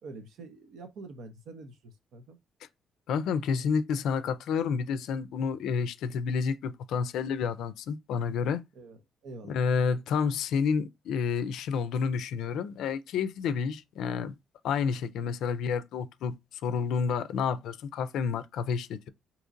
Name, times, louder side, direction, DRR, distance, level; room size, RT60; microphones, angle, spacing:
voice 1, 0.0-2.4 8.7-9.7, right 3 dB, 80° right, 0.7 m, -46 dB
voice 2, 3.1-8.6 9.5-14.3 14.6-16.4 16.6-19.1, left 6 dB, 80° left, 0.4 m, -29 dB
3.8 x 2.8 x 2.5 m
cardioid pair, 90°, 0 cm